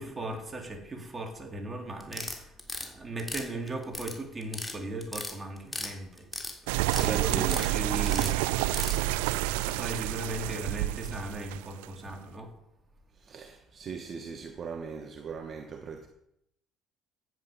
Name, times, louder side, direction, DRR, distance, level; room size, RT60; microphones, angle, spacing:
voice 1, 0.0-6.3 6.6-12.5, right 1 dB, 25° right, 3.8 m, -38 dB
sound 1, 2.0-2.9 3.2-4.1 4.4-4.7 5.0-5.9 6.2-7.1 7.4-7.7 8.1-8.9, left 2 dB, 10° left, 3.1 m, -36 dB
sound 2, 6.7-12.1, right 17 dB, 85° right, 0.4 m, -29 dB
voice 2, 7.1-7.5 13.1-16.1, right 6 dB, 45° right, 1.4 m, -39 dB
15.0 x 10.0 x 5.4 m
supercardioid pair, 75°, 0 cm